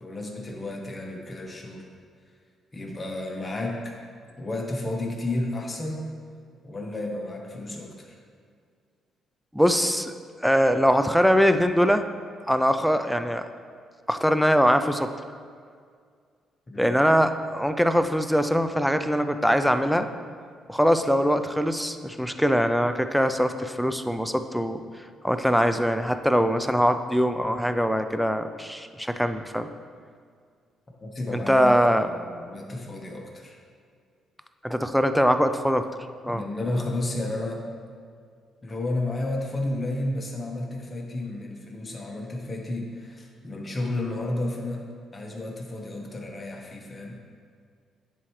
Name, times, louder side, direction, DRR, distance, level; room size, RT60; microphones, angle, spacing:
voice 1, 0.0-1.9 2.7-3.9 4.4-6.1 6.6-8.2 16.7-16.9 31.0-31.7 32.0-33.6 36.2-37.6 38.6-47.2, left 2 dB, 25° left, 0 dB, 1.2 m, -32 dB
voice 2, 9.5-10.1 10.4-12.0 12.5-13.4 14.1-15.1 16.8-20.1 20.7-24.8 25.2-29.7 31.3-32.1 34.6-35.9 36.2-36.4, equal, ahead, 9 dB, 0.4 m, -22 dB
10.0 x 4.4 x 3.2 m, 2.1 s
cardioid pair, 90°, 0 cm